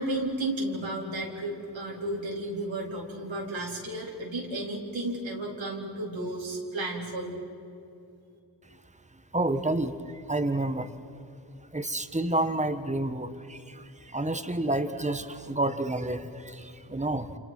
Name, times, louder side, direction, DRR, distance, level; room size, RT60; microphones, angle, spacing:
voice 1, 0.0-7.4, right 1 dB, 90° right, -2 dB, 4.3 m, -33 dB
voice 2, 9.3-9.9 10.3-10.9 11.7-13.8 14.1-17.4, right 2 dB, 15° right, 9 dB, 1.6 m, -29 dB
29.0 x 27.5 x 6.2 m, 2.5 s
cardioid pair, 60°, 44 cm